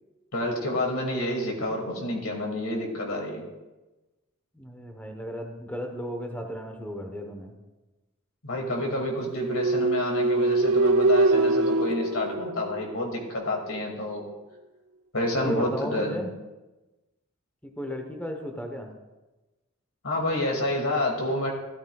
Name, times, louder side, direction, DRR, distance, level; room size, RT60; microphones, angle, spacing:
voice 1, 0.3-3.4 8.4-14.3 15.1-16.2 20.0-21.5, left 1 dB, 70° left, 1 dB, 2.3 m, -29 dB
voice 2, 4.5-7.5 15.3-16.3 17.6-18.9, equal, 5° left, 3 dB, 1.0 m, -35 dB
sound 1, 9.4-13.2, right 2 dB, 85° right, 0.6 m, -23 dB
13.5 x 13.0 x 2.3 m, 1.1 s
head